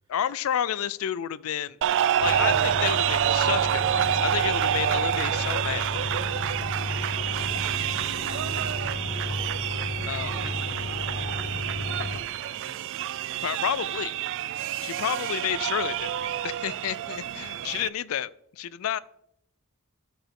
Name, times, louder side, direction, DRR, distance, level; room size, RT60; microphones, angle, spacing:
voice 1, 0.1-1.8 2.2-5.9 10.1-10.3 13.4-14.1 14.8-19.0, left 10 dB, 70° left, 20 dB, 0.4 m, -30 dB
sound 1, 1.8-17.9, right 11 dB, 60° right, 0.3 m, -28 dB
sound 2, 2.2-12.2, left 1 dB, 50° left, 0.8 m, -33 dB
voice 2, 10.2-12.9 14.7-14.9 17.2-17.8, left 1 dB, 15° right, -6 dB, 1.7 m, -53 dB
12.0 x 5.9 x 3.6 m, 0.76 s
head